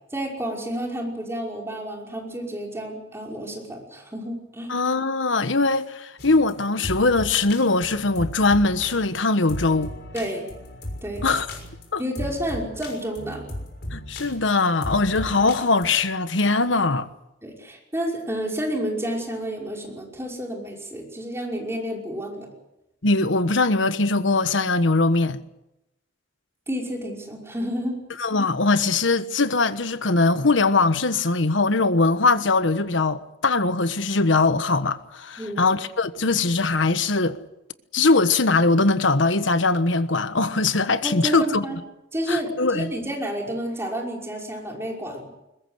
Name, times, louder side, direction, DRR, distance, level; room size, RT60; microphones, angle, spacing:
voice 1, 0.1-4.7 10.1-10.5 11.0-11.3 12.0-13.5 17.4-22.5 26.7-28.0 35.4-35.6 41.0-41.8 42.1-45.3, equal, 15° right, 5.5 m, -30 dB
voice 2, 4.7-9.9 11.2-11.5 11.9-12.0 13.9-17.1 23.0-25.4 28.2-37.4 37.9-41.6 42.3-42.9, left 3 dB, 85° left, 1.3 m, -21 dB
sound 1, 6.2-15.9, left 1 dB, 60° left, 6.4 m, -36 dB
22.0 x 20.5 x 8.1 m
head